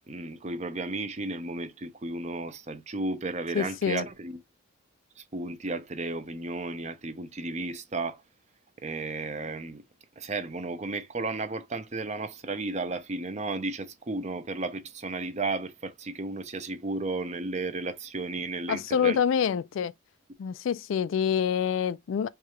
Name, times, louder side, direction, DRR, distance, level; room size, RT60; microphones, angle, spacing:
voice 1, 0.1-4.4 5.3-8.2 8.8-9.8 10.2-19.2, right 3 dB, 35° right, 0.6 m, -33 dB
voice 2, 3.5-4.0 18.7-19.9 20.4-22.3, left 8 dB, 70° left, 0.3 m, -26 dB
4.7 x 2.4 x 2.9 m
head